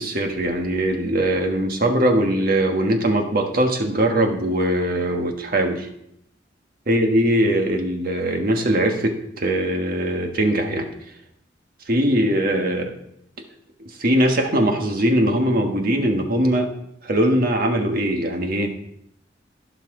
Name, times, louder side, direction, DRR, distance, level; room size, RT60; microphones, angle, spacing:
voice 1, 0.0-5.9 6.9-10.9 11.9-12.9 14.0-16.7 17.0-18.7, right 1 dB, 55° right, 4 dB, 1.4 m, -21 dB
16.0 x 5.9 x 3.8 m, 0.73 s
head